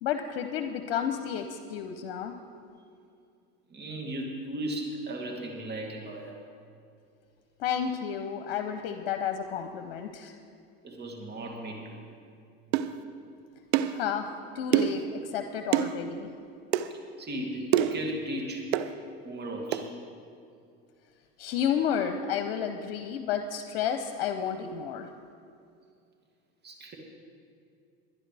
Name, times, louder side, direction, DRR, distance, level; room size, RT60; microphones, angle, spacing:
voice 1, 0.0-2.3 7.6-10.3 13.9-16.3 21.4-25.1, left 8 dB, 85° left, 7 dB, 0.8 m, -31 dB
voice 2, 3.7-6.3 10.8-12.0 15.1-15.3 17.2-18.7 19.2-19.9 26.6-27.0, right 1 dB, 35° right, 0 dB, 2.7 m, -36 dB
sound 1, 12.7-12.9 13.7-14.0 14.7-15.0 15.7-15.9 16.7-16.9 17.7-18.0 18.7-18.9 19.7-19.9, right 11 dB, 90° right, 0.6 m, -25 dB
21.5 x 10.5 x 3.4 m, 2.5 s
supercardioid pair, 95°, 30 cm